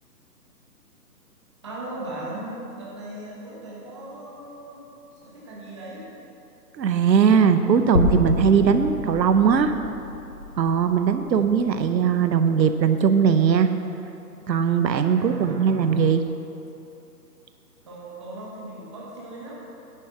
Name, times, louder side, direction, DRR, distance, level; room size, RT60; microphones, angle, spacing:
voice 1, 1.6-4.8 5.1-6.1 15.1-16.1 17.8-19.7, right 1 dB, 15° right, -6 dB, 1.3 m, -38 dB
voice 2, 6.8-9.7 10.6-13.7 14.5-16.2, right 7 dB, 85° right, 9 dB, 0.8 m, -19 dB
sound 1, 8.0-12.2, left 2 dB, 40° left, 1.2 m, -28 dB
10.5 x 6.4 x 5.9 m, 2.8 s
hypercardioid pair, 170°, 50 cm